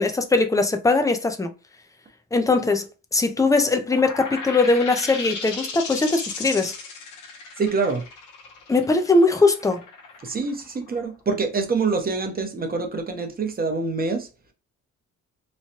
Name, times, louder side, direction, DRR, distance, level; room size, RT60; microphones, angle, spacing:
voice 1, 0.0-1.5 2.3-2.8 3.1-6.7 8.7-9.8, left 3 dB, 10° left, 0.5 m, -20 dB
sound 1, 3.9-11.2, left 4 dB, 80° left, 1.0 m, -35 dB
voice 2, 7.6-8.0 10.2-14.3, right 4 dB, 30° right, 0.8 m, -25 dB
3.1 x 2.2 x 2.8 m
cardioid pair, 90°, 30 cm